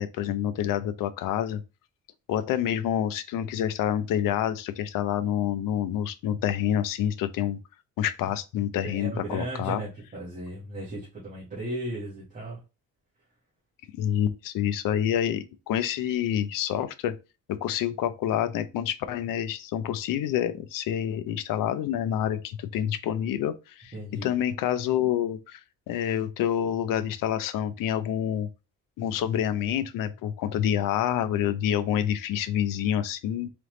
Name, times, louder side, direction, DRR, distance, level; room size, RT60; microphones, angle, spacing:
voice 1, 0.0-1.6 2.3-7.6 8.0-9.8 13.9-17.1 17.5-25.6 25.9-28.5 29.0-33.5, left 10 dB, 75° left, 0.5 m, -27 dB
voice 2, 8.8-12.6 23.9-24.3, right 1 dB, 25° right, 1.3 m, -36 dB
3.8 x 3.3 x 3.0 m
cardioid pair, 165°, 33 cm